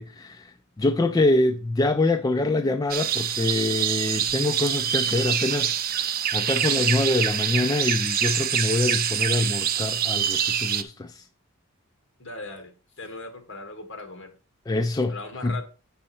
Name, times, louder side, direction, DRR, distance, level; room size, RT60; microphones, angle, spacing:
voice 1, 0.0-11.3 14.7-15.2 15.4-15.6, left 2 dB, 15° left, 0.3 m, -25 dB
sound 1, 2.9-10.8, right 9 dB, 45° right, 0.6 m, -25 dB
voice 2, 12.2-14.3 15.1-15.6, left 3 dB, 60° left, 1.9 m, -39 dB
8.6 x 5.5 x 4.1 m
head